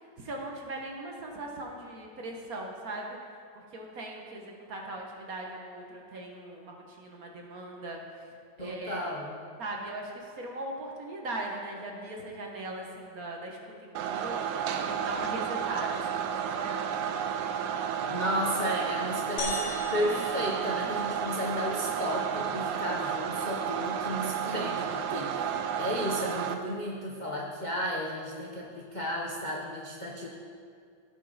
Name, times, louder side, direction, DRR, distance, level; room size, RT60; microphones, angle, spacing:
voice 1, 0.2-3.2 3.5-8.0 8.6-9.0 9.6-14.4 14.8-17.2 17.5-17.6 25.1-25.6, right 2 dB, 50° right, 0 dB, 1.4 m, -40 dB
voice 2, 8.6-9.4 18.0-30.3, equal, 40° left, -3 dB, 0.6 m, -33 dB
sound 1, 14.0-26.5, right 8 dB, 70° right, 1.3 m, -32 dB
sound 2, 19.4-21.8, left 3 dB, 85° left, 2.2 m, -39 dB
16.5 x 6.3 x 4.0 m, 2.3 s
omnidirectional pair, 2.2 m